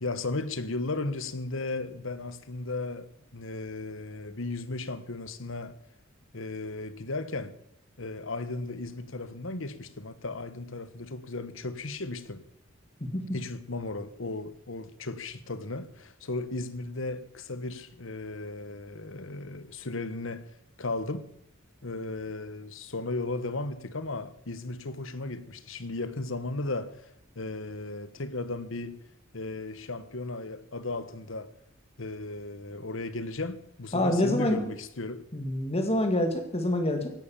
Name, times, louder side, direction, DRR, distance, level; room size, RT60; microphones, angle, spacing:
voice 1, 0.0-5.8 6.3-7.5 8.0-12.4 13.3-20.5 20.8-21.3 21.8-29.0 29.3-31.5 32.0-35.2, left 2 dB, 65° left, 1.3 m, -35 dB
voice 2, 33.9-34.7 35.3-37.1, left 1 dB, 30° left, 2.0 m, -26 dB
16.5 x 12.0 x 7.2 m
head